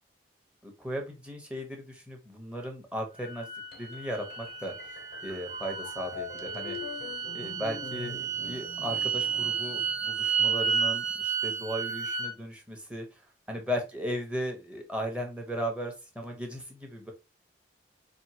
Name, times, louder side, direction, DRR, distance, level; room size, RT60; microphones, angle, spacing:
voice 1, 0.6-3.5 3.8-4.7 5.2-6.8 7.3-13.2 13.5-17.1, equal, 5° right, 2 dB, 0.9 m, -36 dB
sound 1, 3.2-12.3, right 6 dB, 40° right, 0.9 m, -32 dB
sound 2, 3.7-10.4, left 5 dB, 60° left, 0.6 m, -44 dB
4.4 x 2.7 x 2.8 m, 0.26 s
head